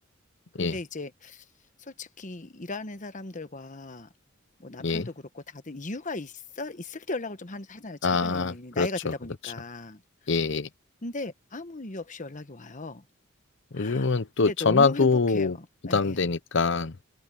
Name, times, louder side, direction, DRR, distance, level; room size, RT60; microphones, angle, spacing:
voice 1, 0.6-1.5 1.8-4.1 4.6-10.0 11.0-13.1 13.7-14.1 14.4-16.2, left 2 dB, 35° left, 1.2 m, -37 dB
voice 2, 8.0-8.9 10.3-10.7 13.7-15.6 15.9-16.9, left 4 dB, 60° left, 0.8 m, -24 dB
head